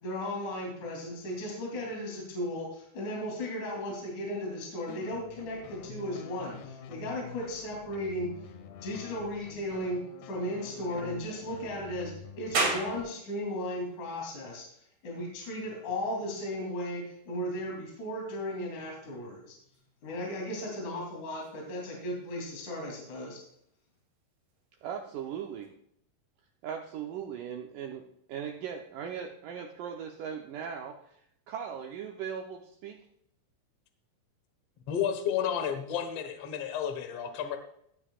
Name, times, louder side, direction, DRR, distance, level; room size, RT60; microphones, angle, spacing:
voice 1, 0.0-8.3 8.8-10.0 10.2-12.1 12.4-14.6 15.0-19.5 20.0-23.4, left 1 dB, 50° left, -2 dB, 4.2 m, -36 dB
sound 1, 4.9-13.0, left 8 dB, 90° left, 3.1 m, -47 dB
sound 2, 12.5-25.7, right 3 dB, 40° right, 3.3 m, -41 dB
voice 2, 24.8-25.7 26.6-31.2 31.5-33.1 36.6-36.7, right 8 dB, 90° right, 3 dB, 1.8 m, -39 dB
voice 3, 34.9-37.6, left 8 dB, 65° left, 7 dB, 1.5 m, -31 dB
17.0 x 10.0 x 2.4 m, 0.72 s
omnidirectional pair, 4.7 m